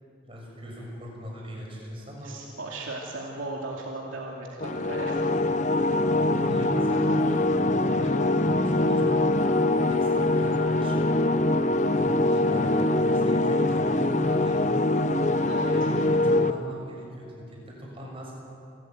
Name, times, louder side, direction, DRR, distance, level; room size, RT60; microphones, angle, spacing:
voice 1, 0.2-2.3 5.9-6.0 6.3-7.4 7.8-9.3 9.9-11.0 11.9-14.9 15.6-18.3, equal, 25° right, -2 dB, 6.5 m, -40 dB
voice 2, 2.2-5.2 15.4-15.9, right 2 dB, 85° right, -2 dB, 2.6 m, -37 dB
sound 1, 4.6-16.5, left 2 dB, 35° left, 0.8 m, -23 dB
28.5 x 14.0 x 9.2 m, 2.7 s
head